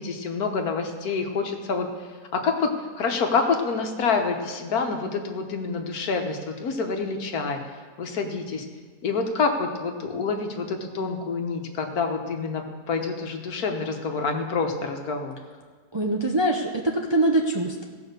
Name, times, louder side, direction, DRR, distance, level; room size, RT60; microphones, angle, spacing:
voice 1, 0.0-1.9 2.3-2.7 3.0-7.6 8.0-8.7 9.0-15.3, left 4 dB, 75° left, 4 dB, 1.6 m, -27 dB
voice 2, 15.9-17.9, right 1 dB, 25° right, 1 dB, 0.6 m, -23 dB
16.5 x 5.6 x 6.6 m, 1.5 s
omnidirectional pair, 1.6 m